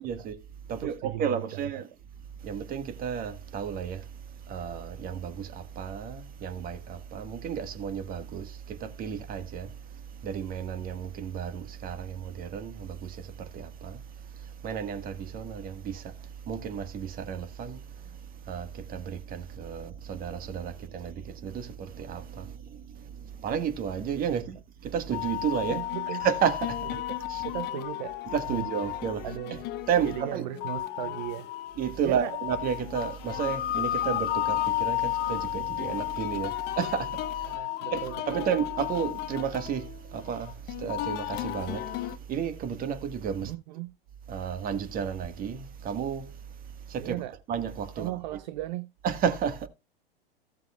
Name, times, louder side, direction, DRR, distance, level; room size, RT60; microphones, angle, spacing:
voice 1, 0.0-1.9 2.2-25.8 26.1-27.0 27.3-27.4 28.3-30.4 31.8-37.6 37.9-43.5 44.3-47.1 47.5-48.2 49.0-49.7, right 7 dB, 30° right, 1.6 m, -33 dB
voice 2, 0.8-1.6 24.3-24.5 25.7-26.3 27.1-28.2 28.5-28.7 29.2-29.6 30.0-31.5 32.0-32.3 37.4-38.5 43.4-43.9 47.0-47.3 48.0-48.9, right 15 dB, 50° right, 0.6 m, -37 dB
sound 1, 25.1-42.2, left 14 dB, 35° left, 1.0 m, -33 dB
16.5 x 7.5 x 2.3 m
figure-of-eight pair, 95°, 30 cm